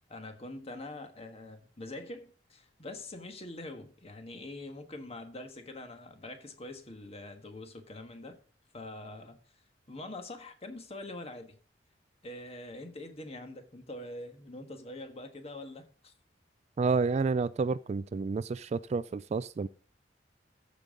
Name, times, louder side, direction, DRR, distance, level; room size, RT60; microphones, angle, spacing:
voice 1, 0.1-8.4 8.7-9.4 9.9-11.6 12.2-16.1, left 2 dB, 35° left, 1.5 m, -44 dB
voice 2, 16.8-19.7, right 4 dB, 40° right, 0.3 m, -30 dB
14.0 x 5.3 x 3.8 m
head